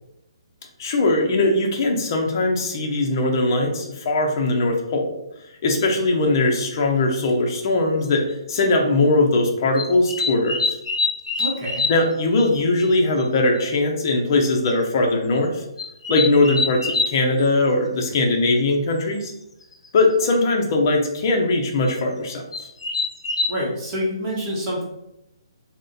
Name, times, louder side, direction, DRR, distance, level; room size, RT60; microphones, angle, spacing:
voice 1, 0.8-5.1 5.6-10.6 11.9-15.6 16.1-19.3 19.9-22.4, left 2 dB, 40° left, 1 dB, 0.6 m, -20 dB
sound 1, 5.8-5.9 7.3-7.4 8.1-8.3 9.8-12.1 12.4-12.5 12.8-12.9 13.2-13.3 13.6-13.7 14.5-14.7 15.8-17.2 19.2-19.3 19.6-20.0 21.9-22.0 22.5-23.5, left 3 dB, 85° left, 0.5 m, -25 dB
voice 2, 11.4-11.9 23.5-24.8, equal, 25° right, -5 dB, 1.0 m, -27 dB
2.5 x 2.1 x 3.7 m, 0.86 s
hypercardioid pair, 160°, 3 cm